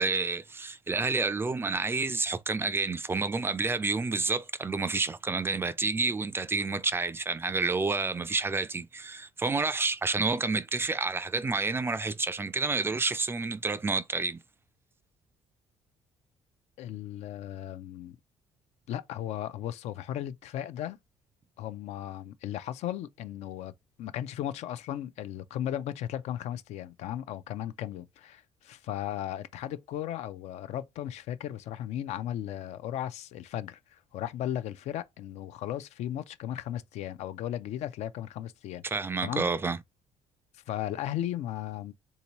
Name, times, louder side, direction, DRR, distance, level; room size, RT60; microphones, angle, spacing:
voice 1, 0.0-14.4 38.8-39.8, right 4 dB, 20° right, 0.3 m, -29 dB
voice 2, 16.8-18.2 18.9-21.0 21.6-23.7 24.0-38.8 39.2-39.5 40.7-41.9, left 11 dB, 70° left, 0.4 m, -36 dB
3.6 x 2.7 x 2.9 m
cardioid pair, 100°, 12 cm